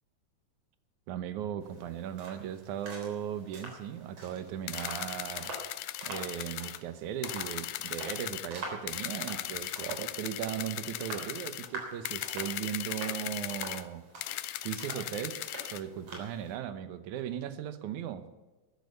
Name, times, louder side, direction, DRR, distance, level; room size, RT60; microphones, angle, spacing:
voice 1, 1.1-5.5 6.0-14.0 14.6-18.3, right 10 dB, 80° right, 11 dB, 2.4 m, -37 dB
sound 1, 1.6-16.5, right 2 dB, 55° right, 4.6 m, -46 dB
sound 2, 4.7-6.8 7.2-8.5 8.9-11.7 12.0-13.8 14.2-15.8, left 14 dB, 80° left, 1.9 m, -38 dB
13.5 x 11.0 x 6.9 m, 1.1 s
omnidirectional pair, 3.4 m